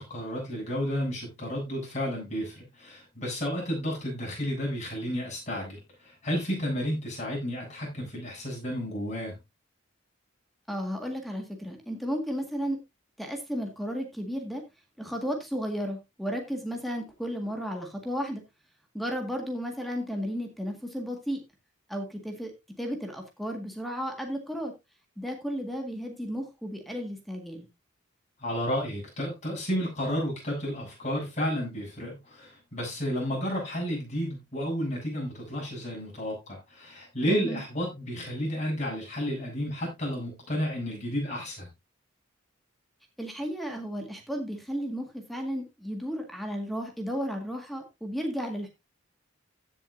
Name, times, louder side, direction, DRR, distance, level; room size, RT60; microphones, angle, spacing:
voice 1, 0.0-9.3 28.4-41.7, equal, 35° left, 7.7 m, -32 dB
voice 2, 10.7-12.8 13.2-14.6 15.0-18.4 18.9-21.4 21.9-22.5 22.8-24.7 25.2-27.7 37.3-37.6 43.2-48.7, equal, ahead, 1.8 m, -33 dB
15.5 x 7.5 x 2.6 m
head